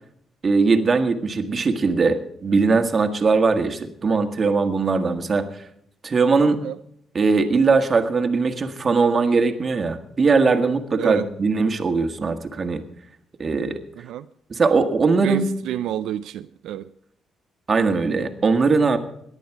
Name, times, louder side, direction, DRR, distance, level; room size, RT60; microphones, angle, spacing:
voice 1, 0.4-5.5 6.0-6.6 7.2-12.8 13.4-13.8 14.5-15.5 17.7-19.0, right 4 dB, 40° right, 1.7 m, -20 dB
voice 2, 15.2-16.9, right 12 dB, 85° right, 0.4 m, -29 dB
17.5 x 10.5 x 4.7 m
cardioid pair, 90°, 0 cm